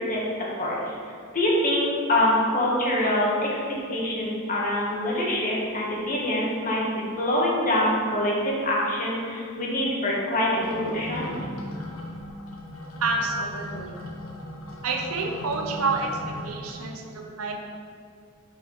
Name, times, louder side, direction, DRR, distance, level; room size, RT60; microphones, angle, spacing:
voice 1, 0.6-0.9 1.3-3.6 3.9-11.3, left 1 dB, 40° left, -4 dB, 1.4 m, -25 dB
sound 1, 10.5-16.7, left 1 dB, 75° left, 0.9 m, -38 dB
voice 2, 13.0-14.0 14.8-17.5, right 3 dB, 85° right, 2 dB, 0.7 m, -29 dB
5.5 x 4.5 x 5.3 m, 2.2 s
head